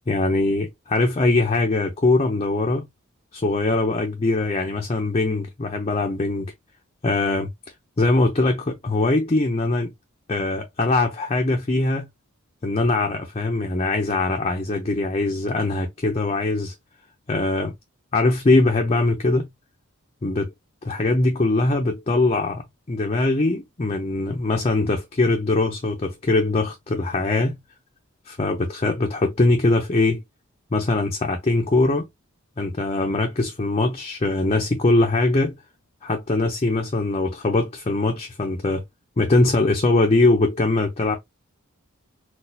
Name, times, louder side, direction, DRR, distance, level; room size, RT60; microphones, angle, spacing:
voice 1, 0.1-2.9 3.3-6.5 7.0-7.5 8.0-9.9 10.3-12.1 12.6-16.7 17.3-17.7 18.1-19.5 20.2-20.5 20.8-27.6 28.3-30.2 30.7-32.1 32.6-35.5 36.0-38.8 39.2-41.2, left 2 dB, 30° left, 0.5 m, -22 dB
4.0 x 2.3 x 2.7 m
head